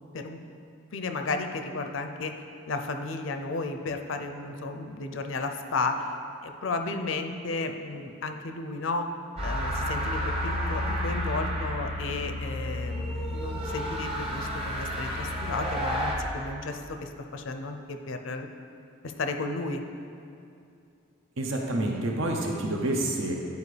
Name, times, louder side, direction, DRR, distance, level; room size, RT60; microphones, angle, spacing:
voice 1, 0.9-2.3 2.7-9.1 9.4-18.5 19.0-19.8, left 3 dB, 70° left, 6 dB, 0.5 m, -33 dB
sound 1, 9.4-16.1, equal, 30° right, 1.1 m, -31 dB
voice 2, 21.4-23.4, right 1 dB, 75° right, 0 dB, 0.9 m, -28 dB
10.5 x 4.8 x 3.3 m, 2.6 s
head